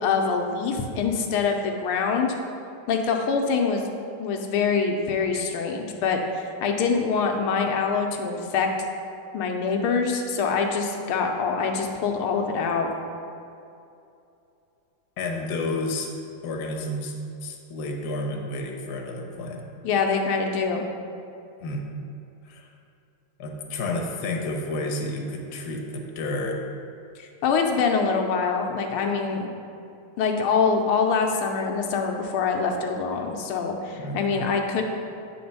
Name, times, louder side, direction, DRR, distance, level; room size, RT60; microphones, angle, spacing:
voice 1, 0.0-2.3 2.9-3.8 4.2-8.7 9.3-12.9 19.8-20.8 27.2-29.5 30.2-34.8, left 5 dB, 90° left, 2 dB, 1.6 m, -24 dB
voice 2, 15.2-16.1 16.4-17.2 17.4-19.6 21.6-21.9 22.4-22.7 23.4-26.6 34.0-34.5, left 2 dB, 60° left, 1 dB, 1.2 m, -31 dB
8.5 x 4.3 x 5.4 m, 2.6 s
omnidirectional pair, 2.3 m